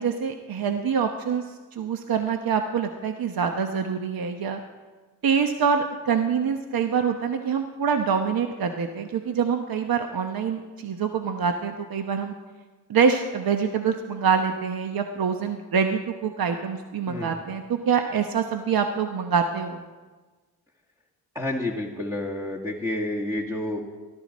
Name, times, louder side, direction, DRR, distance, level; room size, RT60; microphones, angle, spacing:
voice 1, 0.0-4.6 5.2-12.3 12.9-19.8, right 6 dB, 60° right, 6 dB, 1.0 m, -25 dB
voice 2, 21.3-23.8, left 1 dB, 10° right, -1 dB, 1.7 m, -29 dB
19.0 x 12.5 x 4.2 m, 1.3 s
cardioid pair, 80°, 40 cm